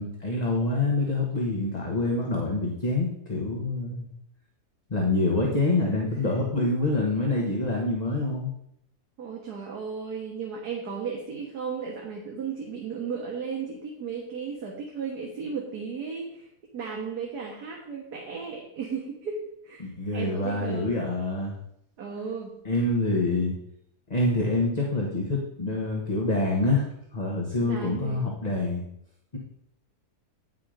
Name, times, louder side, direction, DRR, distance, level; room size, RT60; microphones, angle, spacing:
voice 1, 0.0-4.1 4.9-8.5 19.8-21.5 22.6-23.5 24.1-26.8 27.1-28.8, left 2 dB, 25° left, -1 dB, 1.3 m, -26 dB
voice 2, 6.0-6.7 9.2-16.5 16.7-19.4 19.6-21.0 22.0-22.5 27.6-28.3, right 6 dB, 75° right, -1 dB, 1.8 m, -35 dB
9.4 x 6.1 x 5.1 m, 0.76 s
omnidirectional pair, 1.7 m